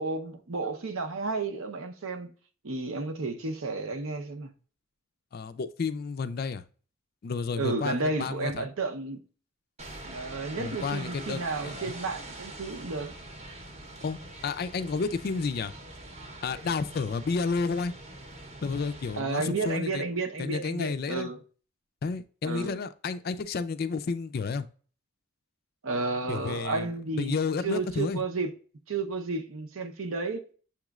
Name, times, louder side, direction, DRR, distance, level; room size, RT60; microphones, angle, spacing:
voice 1, 0.0-2.3 2.6-4.5 7.6-9.2 10.0-13.1 19.1-21.4 22.4-22.8 25.8-27.4 27.6-28.5 28.9-30.4, right 3 dB, 80° right, 0.7 m, -32 dB
voice 2, 5.3-6.6 7.2-8.7 10.6-11.8 14.0-15.7 16.4-17.9 18.6-20.0 20.4-21.3 22.0-24.7 26.3-26.9 27.2-28.2, left 4 dB, 45° left, 0.3 m, -31 dB
sound 1, 9.8-19.2, right 2 dB, 30° right, 0.8 m, -44 dB
7.1 x 3.0 x 2.3 m
head